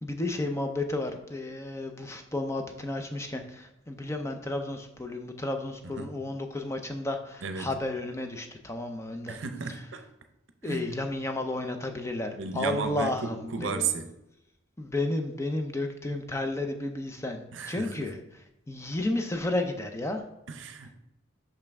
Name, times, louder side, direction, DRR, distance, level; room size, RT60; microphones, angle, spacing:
voice 1, 0.0-9.4 10.6-13.9 14.8-18.2 18.7-20.2, left 2 dB, 15° left, 5 dB, 0.5 m, -32 dB
voice 2, 5.8-6.2 7.4-7.7 9.3-10.0 10.6-10.9 12.4-14.1 17.5-18.1 20.5-20.9, right 5 dB, 70° right, 8 dB, 0.6 m, -34 dB
5.9 x 5.5 x 3.5 m, 0.88 s
head